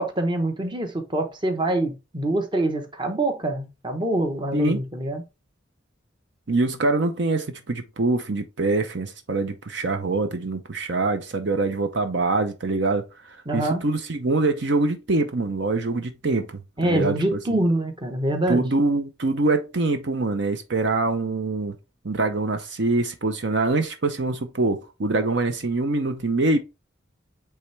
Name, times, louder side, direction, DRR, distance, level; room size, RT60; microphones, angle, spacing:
voice 1, 0.0-5.2 13.5-13.8 16.8-18.6, right 1 dB, 25° right, 1.1 m, -25 dB
voice 2, 6.5-17.6 18.5-21.8 22.0-26.6, right 2 dB, 65° right, 0.8 m, -24 dB
8.4 x 3.5 x 3.3 m
head